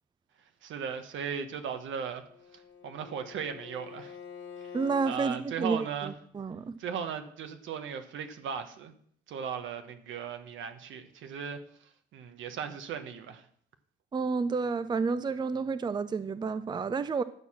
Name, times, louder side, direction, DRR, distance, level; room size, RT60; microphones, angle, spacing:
voice 1, 0.6-2.2 2.5-4.2 4.6-4.7 5.0-6.1 6.8-8.9 9.3-11.6 12.1-13.4, right 7 dB, 75° right, 7 dB, 1.2 m, -37 dB
Bowed string instrument, 2.0-5.2, left 6 dB, 70° left, 1.6 m, -47 dB
voice 2, 4.7-6.8 14.1-17.2, right 4 dB, 20° right, 13 dB, 0.5 m, -30 dB
11.0 x 4.6 x 7.2 m, 0.63 s
cardioid pair, 90°, 20 cm